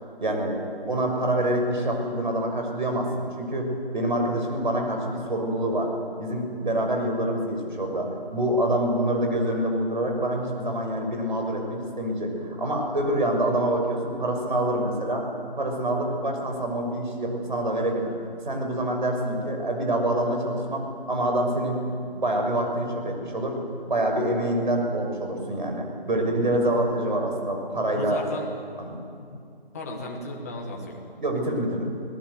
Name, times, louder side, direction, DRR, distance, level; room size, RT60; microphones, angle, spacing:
voice 1, 0.2-0.6 0.9-5.9 6.2-15.3 15.6-18.1 18.4-21.8 22.1-23.6 23.9-28.2 28.8-29.0 31.2-31.9, right 1 dB, 55° right, 2 dB, 6.4 m, -26 dB
voice 2, 28.0-28.5 29.2-29.4 29.7-31.0, left 1 dB, 15° left, 0 dB, 1.9 m, -35 dB
25.0 x 19.0 x 8.2 m, 2.4 s
figure-of-eight pair, 170°, 30 cm